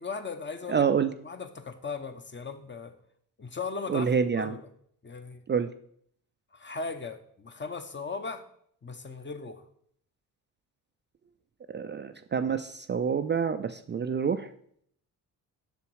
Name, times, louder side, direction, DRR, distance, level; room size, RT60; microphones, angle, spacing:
voice 1, 0.0-0.9 1.2-2.9 3.4-4.7 5.0-5.4 6.5-8.4 8.8-9.6, left 4 dB, 30° left, 8 dB, 1.0 m, -37 dB
voice 2, 0.7-1.1 3.9-4.5 5.5-5.7 11.7-14.5, right 6 dB, 25° right, 8 dB, 0.5 m, -27 dB
6.9 x 6.1 x 4.7 m, 0.66 s
supercardioid pair, 70°, 41 cm